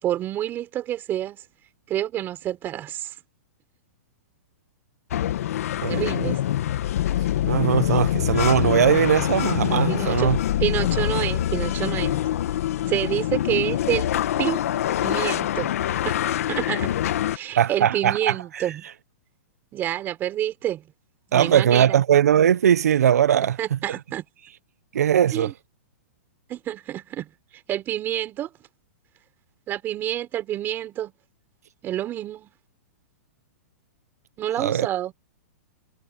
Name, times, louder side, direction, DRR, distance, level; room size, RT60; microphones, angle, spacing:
voice 1, 0.0-1.4 1.9-3.1 5.9-6.4 9.9-10.3 10.6-12.3 12.9-14.1 14.4-14.6 15.0-15.8 16.0-16.9 17.3-18.9 19.7-20.8 21.3-22.0 23.6-24.2 25.3-25.5 26.5-27.3 27.7-28.5 29.7-31.1 31.8-32.5 34.4-35.1, right 12 dB, 25° right, 4.1 m, -28 dB
sound 1, 5.1-17.4, left 12 dB, 65° left, 1.5 m, -24 dB
voice 2, 5.8-6.3 7.4-10.4 17.6-18.7 21.3-23.8 24.9-25.5 34.6-34.9, right 9 dB, 80° right, 0.9 m, -20 dB
hypercardioid pair, 145°, 8 cm